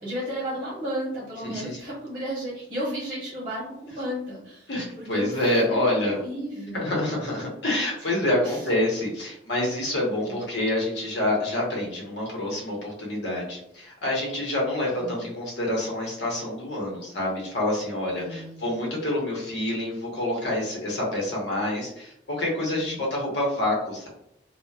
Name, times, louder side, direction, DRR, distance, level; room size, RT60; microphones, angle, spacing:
voice 1, 0.0-4.7 5.0-5.4 5.7-6.9 8.4-8.6 10.3-10.4 15.0-15.2 18.1-18.6 22.8-23.1, equal, 25° right, -8 dB, 0.9 m, -33 dB
voice 2, 1.4-1.8 4.7-6.2 6.7-24.1, left 1 dB, 75° left, -3 dB, 0.9 m, -27 dB
2.8 x 2.1 x 2.3 m, 0.77 s
head